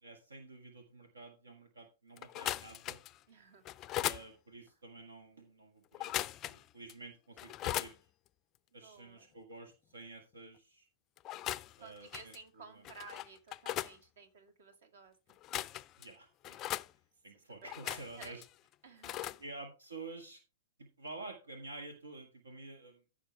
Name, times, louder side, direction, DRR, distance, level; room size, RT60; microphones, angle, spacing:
voice 1, 0.0-3.0 4.0-6.2 6.4-7.9 8.7-10.9 11.8-12.3 12.7-12.8 16.0-16.6 17.2-18.4 19.2-20.4 20.8-23.0, right 3 dB, 75° right, 5 dB, 1.8 m, -50 dB
sound 1, 2.2-3.2 3.6-4.2 5.9-6.6 6.9-7.0 7.4-7.9 11.2-11.8 12.1-12.4 12.8-13.9 15.3-16.1 16.4-16.9 17.6-18.5 19.0-19.4, left 14 dB, 30° left, 0.4 m, -38 dB
voice 2, 3.3-3.7 8.7-9.3 11.8-15.4 17.6-18.4 18.8-19.4, right 5 dB, 60° right, 7 dB, 2.2 m, -54 dB
15.0 x 6.0 x 3.3 m, 0.30 s
figure-of-eight pair, 110°, 0 cm